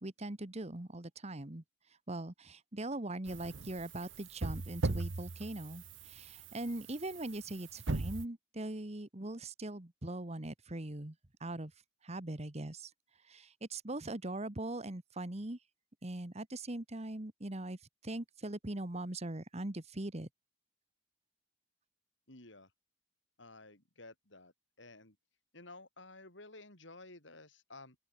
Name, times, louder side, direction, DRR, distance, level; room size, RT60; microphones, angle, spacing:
voice 1, 0.0-1.6 2.1-11.1 11.4-11.7 12.0-12.9 13.3-15.6 16.0-17.8 18.0-20.3, right 1 dB, 35° right, 1.5 m, -41 dB
sound 1, 3.3-8.2, right 3 dB, 75° right, 1.0 m, -40 dB
voice 2, 22.3-22.7 23.4-24.5 24.8-25.2 25.5-28.0, left 2 dB, 70° left, 6.8 m, -53 dB
open air
head